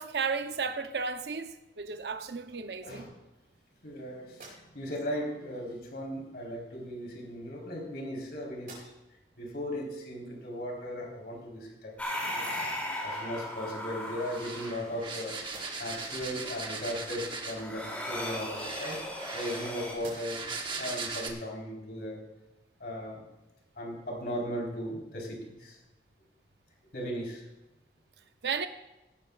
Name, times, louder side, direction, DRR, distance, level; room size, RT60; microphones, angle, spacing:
voice 1, 0.0-3.1 28.4-28.7, right 5 dB, 70° right, 0.7 m, -33 dB
voice 2, 2.8-3.2 3.8-8.9 9.4-11.9 12.3-12.6 13.0-19.0 19.3-20.5 20.8-22.2 22.8-23.3 23.8-25.8 26.9-27.4, equal, 60° left, 3.8 m, -37 dB
sound 1, 4.3-5.1 6.2-6.4 7.3-8.2 8.5-9.3 9.8-9.9 12.5-12.6 13.1-13.8 14.3-15.1 15.4-16.1 18.1-19.6 19.9-20.6, right 2 dB, 55° right, 4.7 m, -54 dB
sound 2, 12.0-19.9, left 1 dB, 10° left, 2.7 m, -38 dB
sound 3, 14.2-17.7 18.5-21.3, right 4 dB, 30° right, 1.2 m, -39 dB
17.5 x 12.0 x 2.4 m
head